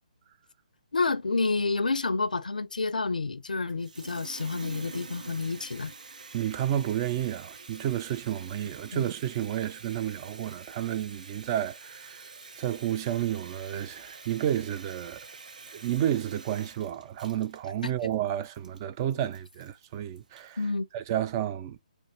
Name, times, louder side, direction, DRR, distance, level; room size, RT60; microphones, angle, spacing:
voice 1, 0.9-5.9 8.9-9.1 17.8-17.9 20.6-20.9, left 3 dB, 80° left, 0.5 m, -29 dB
Water tap faucet, 3.7-20.6, right 4 dB, 70° right, 0.9 m, -47 dB
voice 2, 6.3-12.3 12.6-15.2 15.7-20.6 20.9-21.8, right 11 dB, 30° right, 0.4 m, -31 dB
4.4 x 2.1 x 4.5 m
figure-of-eight pair, 140°, 4 cm